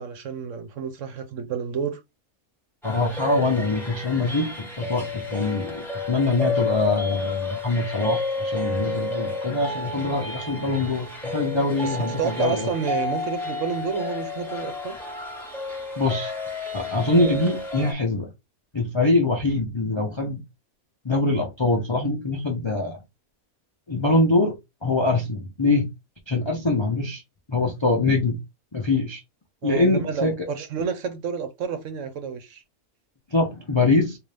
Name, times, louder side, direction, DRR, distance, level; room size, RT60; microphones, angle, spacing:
voice 1, 0.0-2.0 11.8-15.0 29.6-32.6, right 6 dB, 65° right, 1.0 m, -30 dB
voice 2, 2.8-12.7 16.0-16.3 16.7-18.3 18.7-20.4 21.0-23.0 23.9-24.5 24.8-25.9 26.3-27.2 27.5-28.4 28.7-29.2 29.6-30.3 33.3-34.2, left 2 dB, 35° left, 0.4 m, -23 dB
sound 1, 2.8-17.9, left 3 dB, ahead, 0.9 m, -31 dB
3.9 x 2.5 x 3.3 m
omnidirectional pair, 1.5 m